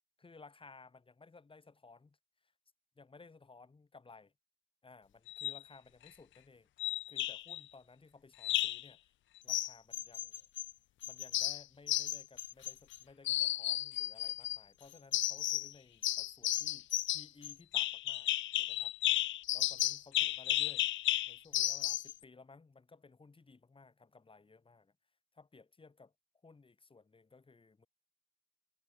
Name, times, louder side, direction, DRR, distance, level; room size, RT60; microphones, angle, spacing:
voice 1, 0.2-2.2 2.4-2.5 3.0-4.3 4.8-6.7 7.1-9.1 9.4-10.5 11.1-18.3 18.6-18.9 19.5-20.9 21.3-24.9 25.3-26.1 26.4-27.9, left 4 dB, 25° left, 5.5 m, -58 dB
sound 1, 5.3-5.6 6.8-7.6 8.4-8.9 9.5-10.7 11.0-13.0 13.2-14.6 15.1-15.7 16.0-22.1, left 14 dB, 70° left, 0.6 m, -33 dB
cardioid pair, 90°, 20 cm